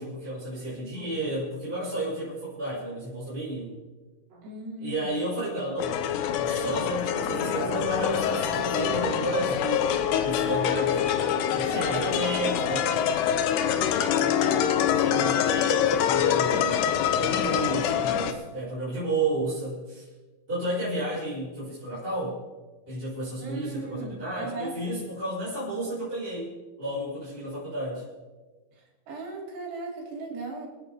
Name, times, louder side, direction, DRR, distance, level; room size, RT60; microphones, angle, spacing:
voice 1, 0.0-3.7 4.8-11.0 11.5-13.1 14.1-14.4 14.9-20.1 20.5-22.4 22.9-26.5 26.8-28.0, right 1 dB, 15° right, -9 dB, 6.2 m, -32 dB
sound 1, 4.3-4.5 5.5-5.7 7.3-9.7 13.6-15.6, right 3 dB, 45° right, 4.2 m, -37 dB
voice 2, 4.4-5.2 11.6-12.2 13.9-14.7 23.4-24.7 29.1-30.7, right 3 dB, 90° right, -1 dB, 5.5 m, -37 dB
sound 2, 5.8-18.3, left 9 dB, 85° left, 3.0 m, -25 dB
28.0 x 9.9 x 3.7 m, 1.3 s
omnidirectional pair, 4.6 m